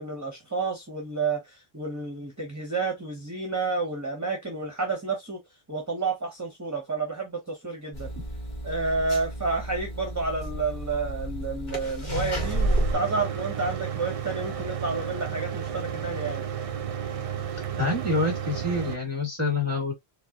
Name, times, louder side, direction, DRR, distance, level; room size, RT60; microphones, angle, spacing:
voice 1, 0.0-5.4 5.7-8.1 8.6-16.4, right 4 dB, 20° right, 0.9 m, -30 dB
sound 1, 7.9-12.9, right 1 dB, 45° left, 1.5 m, -31 dB
Mechanical fan, 12.4-19.0, right 8 dB, 45° right, 0.5 m, -33 dB
voice 2, 17.8-19.9, left 2 dB, 15° left, 2.2 m, -26 dB
4.6 x 2.1 x 2.9 m
omnidirectional pair, 1.1 m